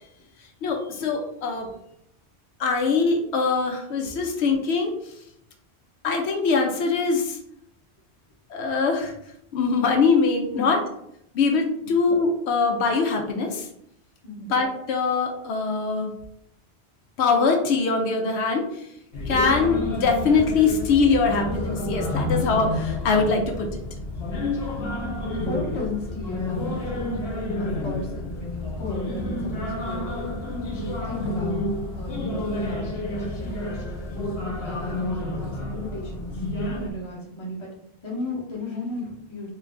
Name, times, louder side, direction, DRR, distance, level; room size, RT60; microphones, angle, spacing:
voice 1, 0.6-1.7 2.6-4.9 6.0-7.4 8.5-9.1 9.5-10.8 11.3-13.7 14.4-16.1 17.2-18.9 19.3-23.8, left 4 dB, 85° left, 2 dB, 0.9 m, -22 dB
sound 1, 19.1-36.9, left 1 dB, 65° left, 1.0 m, -29 dB
voice 2, 25.4-27.1 27.6-30.3 30.8-31.6 31.9-33.6 34.4-37.7 38.0-39.5, left 2 dB, 30° left, -3 dB, 0.9 m, -35 dB
3.0 x 2.5 x 3.4 m, 0.76 s
omnidirectional pair, 1.1 m